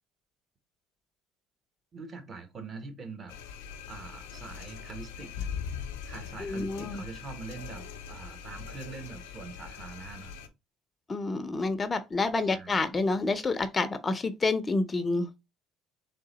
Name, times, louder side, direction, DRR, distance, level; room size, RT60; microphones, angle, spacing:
voice 1, 1.9-3.3 3.9-5.5 6.0-10.3 12.5-12.7, right 4 dB, 40° right, 1.4 m, -43 dB
sound 1, 3.3-10.5, left 7 dB, 85° left, 0.7 m, -41 dB
voice 2, 6.4-7.0 11.1-15.3, left 3 dB, 25° left, 0.6 m, -28 dB
3.8 x 3.2 x 4.2 m
supercardioid pair, 75°, 0 cm